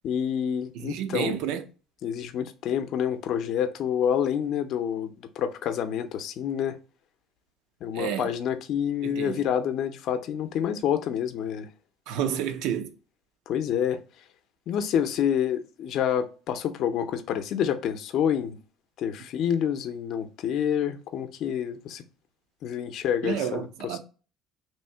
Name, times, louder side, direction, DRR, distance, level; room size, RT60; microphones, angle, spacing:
voice 1, 0.0-1.4 2.0-6.8 7.8-11.7 13.5-14.0 14.7-18.6 19.0-22.0 22.6-24.0, left 9 dB, 60° left, 0.6 m, -28 dB
voice 2, 0.7-1.6 7.9-8.3 9.0-9.4 12.1-12.9 23.2-24.0, right 9 dB, 80° right, 0.6 m, -30 dB
3.1 x 2.7 x 4.3 m
cardioid pair, 120°, 0 cm